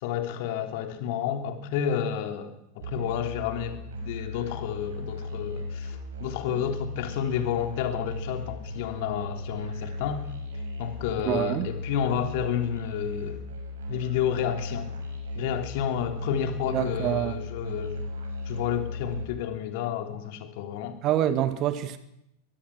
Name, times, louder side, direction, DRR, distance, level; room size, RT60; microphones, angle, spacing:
voice 1, 0.0-10.2 10.8-13.4 13.9-14.9 15.3-18.0 18.5-21.0, left 9 dB, 50° left, 3.2 m, -30 dB
Musical instrument, 2.8-19.3, left 2 dB, 65° right, 6.0 m, -36 dB
voice 2, 11.3-11.7 16.7-17.4 21.0-22.0, right 12 dB, 35° right, 1.8 m, -26 dB
22.5 x 21.5 x 6.2 m
figure-of-eight pair, 90°, 0 cm